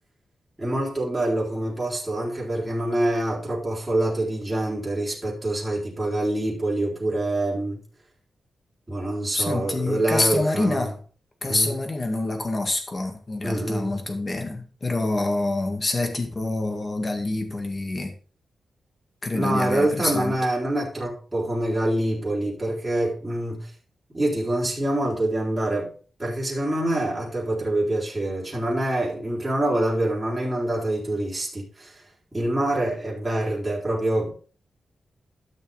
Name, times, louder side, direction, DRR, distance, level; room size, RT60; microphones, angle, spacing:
voice 1, 0.6-7.8 8.9-10.9 11.5-11.7 13.4-14.0 19.3-23.7 24.1-25.9 26.2-32.0 32.3-34.3, right 1 dB, 15° right, -6 dB, 3.8 m, -26 dB
voice 2, 9.3-11.0 11.4-18.1 19.2-20.3, left 2 dB, 30° left, 4 dB, 2.0 m, -26 dB
12.5 x 6.6 x 3.5 m, 0.39 s
wide cardioid pair, 125°, 0 cm